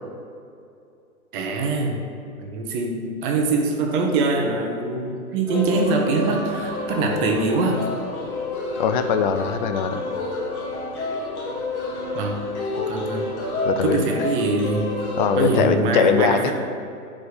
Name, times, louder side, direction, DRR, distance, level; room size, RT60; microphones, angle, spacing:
voice 1, 1.3-2.1 2.4-7.9 12.1-12.4 12.9-13.3 13.8-14.9 15.4-16.5, right 3 dB, 35° right, 2 dB, 1.1 m, -23 dB
sound 1, 5.5-15.7, left 2 dB, 50° left, 1.8 m, -29 dB
voice 2, 8.8-10.0 13.6-14.0 15.2-16.5, left 6 dB, 35° left, 8 dB, 0.5 m, -21 dB
7.0 x 5.1 x 6.6 m, 2.6 s
figure-of-eight pair, 120°, 43 cm